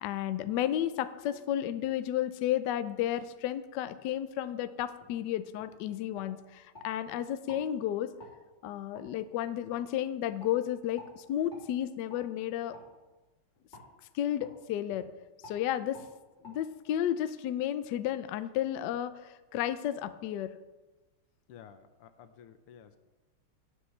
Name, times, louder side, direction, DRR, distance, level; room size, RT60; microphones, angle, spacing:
voice 1, 0.0-8.1 8.6-12.8 14.1-15.1 15.4-16.0 16.4-20.5, left 11 dB, 75° left, 12 dB, 1.0 m, -32 dB
sound 1, 5.0-5.1 5.6-5.7 6.1-6.9 7.4-7.6 8.2-8.3 8.9-9.1 9.7-9.8 10.4-10.5 11.0-11.1 11.5-11.7 12.1-12.2 12.7-12.9 13.7-13.9 14.4-14.5 14.9-15.0 15.4-15.6 15.9-16.1 16.4-16.5, left 1 dB, 20° left, 2.9 m, -51 dB
voice 2, 21.5-23.0, left 8 dB, 90° left, 10 dB, 1.8 m, -53 dB
18.0 x 7.9 x 3.2 m, 1.1 s
omnidirectional pair, 2.4 m